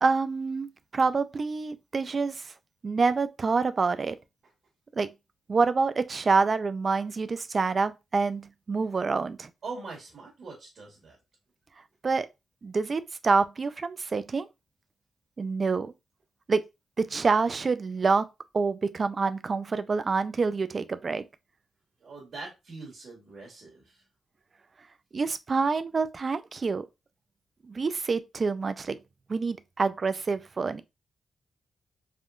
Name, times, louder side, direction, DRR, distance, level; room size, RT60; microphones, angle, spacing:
voice 1, 0.0-2.5 2.8-4.2 4.9-5.1 5.5-9.5 12.0-12.3 12.6-14.5 15.4-15.9 16.5-16.6 17.0-18.2 18.5-21.2 25.1-26.9 27.7-29.0 29.3-30.8, right 4 dB, 45° right, 0.3 m, -27 dB
voice 2, 9.6-11.2 22.0-24.0, right 3 dB, 60° right, 1.4 m, -42 dB
3.5 x 2.2 x 2.4 m
cardioid pair, 85°, 0 cm